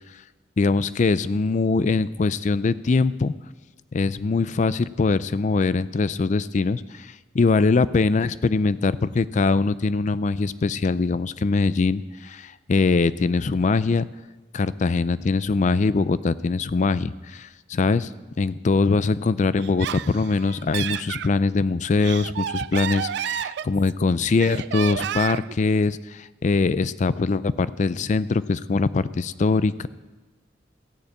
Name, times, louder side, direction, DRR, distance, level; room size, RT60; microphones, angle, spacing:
voice 1, 0.6-3.3 3.9-14.1 14.5-18.1 18.4-29.9, left 4 dB, 40° left, 16 dB, 0.4 m, -22 dB
Laughter, 19.6-21.3 21.8-24.0 24.4-25.6, right 10 dB, 60° right, 0.3 m, -30 dB
14.5 x 6.6 x 8.4 m, 1.2 s
head